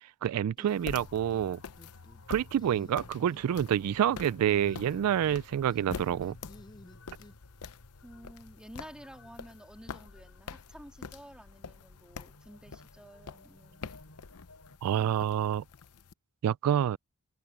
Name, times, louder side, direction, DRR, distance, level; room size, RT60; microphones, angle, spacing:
voice 1, 0.0-1.6 2.3-6.4 14.8-15.6 16.4-17.0, right 10 dB, 85° right, 0.3 m, -28 dB
sound 1, 0.6-1.5 1.8-2.2 2.6-3.4 4.5-5.4 5.7-7.3, left 1 dB, 20° left, 0.5 m, -53 dB
sound 2, 0.7-16.1, left 5 dB, 90° left, 0.7 m, -47 dB
sound 3, 0.7-14.8, left 1 dB, 70° left, 6.2 m, -56 dB
voice 2, 8.0-13.9, equal, 5° right, 2.1 m, -51 dB
open air
head